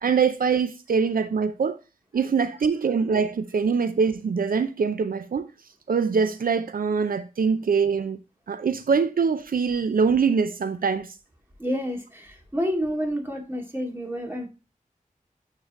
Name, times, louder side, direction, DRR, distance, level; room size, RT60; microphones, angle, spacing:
voice 1, 0.0-1.8 2.1-5.5 5.9-8.2 8.5-11.1, right 5 dB, 85° right, 0.4 m, -23 dB
voice 2, 11.6-14.5, equal, 15° right, 2.1 m, -29 dB
8.8 x 3.7 x 3.0 m
wide cardioid pair, 60°, 15 cm